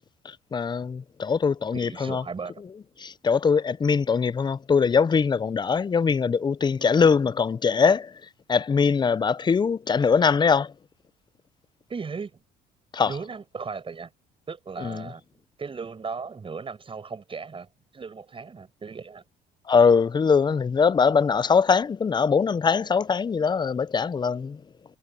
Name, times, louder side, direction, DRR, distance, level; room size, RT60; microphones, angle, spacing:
voice 1, 0.5-2.2 3.0-8.1 8.5-10.7 12.9-13.1 14.8-15.0 19.7-24.6, left 5 dB, 25° left, 0.6 m, -22 dB
voice 2, 1.7-2.6 7.2-7.3 11.9-12.4 13.0-14.1 14.5-15.2 15.6-17.7 17.9-19.2, right 5 dB, 30° right, 6.6 m, -36 dB
cardioid pair, 95°, 18 cm